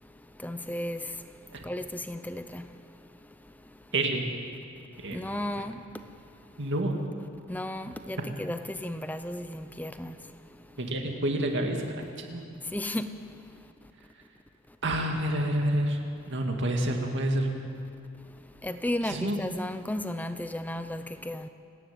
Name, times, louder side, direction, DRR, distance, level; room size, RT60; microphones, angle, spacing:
voice 1, 0.4-1.0 1.6-2.6 5.1-5.8 7.5-10.1 12.7-13.1 18.6-21.5, left 1 dB, 5° left, 0.6 m, -34 dB
voice 2, 3.9-4.2 5.0-5.2 6.6-7.0 10.8-12.4 14.8-16.0 16.3-17.5 19.1-19.4, right 1 dB, 55° right, 2.3 m, -28 dB
30.0 x 10.5 x 8.8 m
head